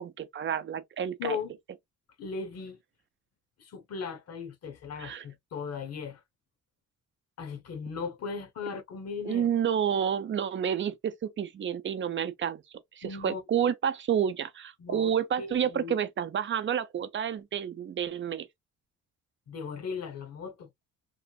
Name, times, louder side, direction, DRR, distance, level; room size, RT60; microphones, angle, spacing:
voice 1, 0.0-1.4 5.0-5.2 9.3-12.6 13.0-18.5, right 8 dB, 40° right, 0.6 m, -29 dB
voice 2, 1.2-1.5 2.2-2.8 3.6-6.2 7.4-9.5 13.0-13.4 14.8-15.1 15.4-16.0 19.5-20.7, left 5 dB, 55° left, 0.9 m, -37 dB
3.1 x 2.5 x 2.3 m
cardioid pair, 90°, 30 cm